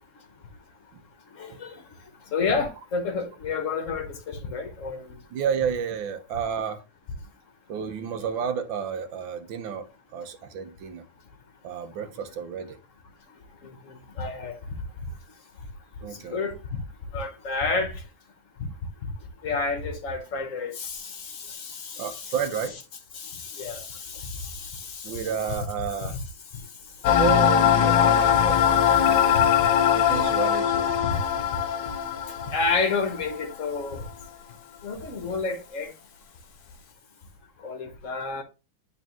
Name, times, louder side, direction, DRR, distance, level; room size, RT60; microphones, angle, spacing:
voice 1, 1.3-1.8 2.3-5.2 13.6-14.6 16.1-16.8 17.1-18.0 19.0-19.1 19.4-22.3 23.1-25.3 26.0-26.2 26.5-26.6 29.3-29.5 31.0-31.2 32.4-34.0 34.8-35.9 37.6-38.4, left 4 dB, 50° left, 1.2 m, -30 dB
voice 2, 5.3-6.8 7.7-11.1 11.6-12.8 16.0-16.4 22.0-22.8 25.0-26.2 27.1-28.7 29.0-29.5 29.9-31.0, right 7 dB, 90° right, 1.7 m, -31 dB
sound 1, 27.0-33.4, left 9 dB, 70° left, 1.4 m, -21 dB
9.0 x 4.0 x 3.0 m
omnidirectional pair, 2.0 m